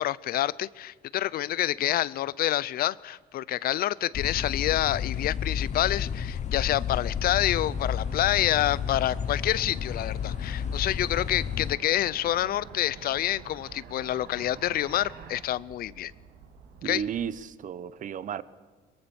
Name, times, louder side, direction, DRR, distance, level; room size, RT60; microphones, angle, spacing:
voice 1, 0.0-16.1 16.8-17.0, left 13 dB, 60° left, 0.6 m, -27 dB
sound 1, 4.1-11.8, left 7 dB, 45° left, 1.1 m, -32 dB
sound 2, 7.2-15.4, right 6 dB, 70° right, 2.7 m, -48 dB
sound 3, 8.8-17.3, right 5 dB, 85° right, 3.2 m, -52 dB
voice 2, 16.8-18.4, right 8 dB, 50° right, 1.0 m, -33 dB
23.5 x 21.0 x 7.1 m
cardioid pair, 110°, 17 cm